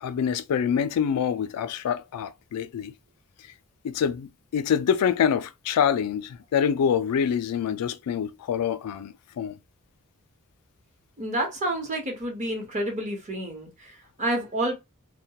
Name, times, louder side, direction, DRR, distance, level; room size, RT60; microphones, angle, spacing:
voice 1, 0.0-2.9 3.8-9.6, left 8 dB, 90° left, 0.3 m, -26 dB
voice 2, 11.2-14.7, right 1 dB, 35° right, 0.8 m, -29 dB
2.2 x 2.1 x 2.7 m
head